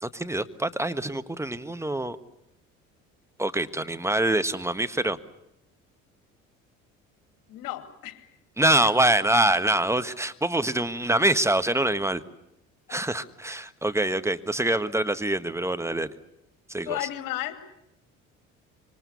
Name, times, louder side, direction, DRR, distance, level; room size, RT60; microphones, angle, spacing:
voice 1, 0.0-2.2 3.4-5.2 8.6-12.2 12.9-16.1 16.7-17.0, right 1 dB, 5° right, 11 dB, 1.5 m, -25 dB
voice 2, 7.5-8.3 8.8-9.1 16.9-17.5, left 14 dB, 55° left, 8 dB, 2.6 m, -34 dB
26.0 x 24.5 x 7.0 m, 0.84 s
figure-of-eight pair, 55°, 40 cm